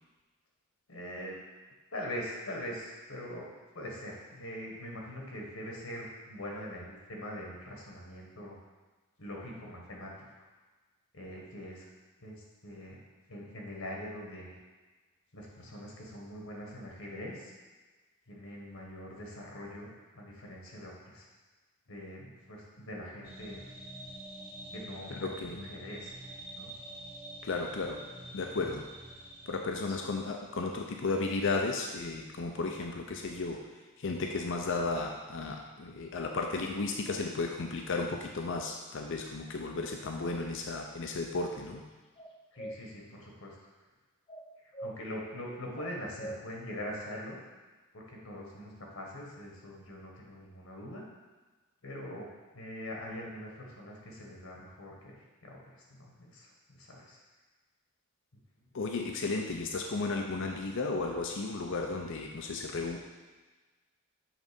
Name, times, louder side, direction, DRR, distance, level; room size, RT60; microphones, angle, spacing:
voice 1, 0.9-1.4 1.9-3.5 3.7-8.6 9.2-10.1 11.1-11.8 12.2-13.0 13.3-14.6 15.3-17.5 18.3-19.9 20.1-21.3 21.9-23.7 24.7-25.3 25.6-26.1 26.5-26.7 29.9-30.0 42.5-43.6 44.6-47.4 47.9-51.0 51.8-52.3 52.5-57.2, equal, 75° left, -1 dB, 1.5 m, -43 dB
sound 1, 23.2-29.6, right 1 dB, 10° right, 1.2 m, -46 dB
voice 2, 25.1-25.6 27.4-28.0 28.3-28.8 29.5-33.6 34.0-41.8 58.7-63.0, left 3 dB, 60° left, 2 dB, 0.6 m, -34 dB
sound 2, 42.2-42.8 44.3-44.9 45.8-46.4, right 1 dB, 25° left, 0.6 m, -42 dB
7.4 x 3.8 x 5.3 m, 1.3 s
head